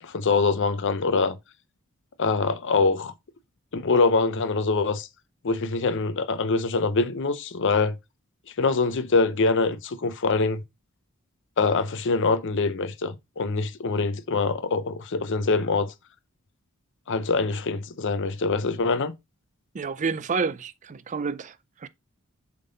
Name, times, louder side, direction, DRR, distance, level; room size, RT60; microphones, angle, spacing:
voice 1, 0.0-1.4 2.2-3.1 3.7-5.1 5.4-8.0 8.6-10.6 11.6-15.9 17.1-19.1, left 4 dB, 55° left, 0.6 m, -24 dB
voice 2, 19.7-21.9, right 5 dB, 35° right, 0.4 m, -29 dB
7.5 x 3.7 x 3.9 m
head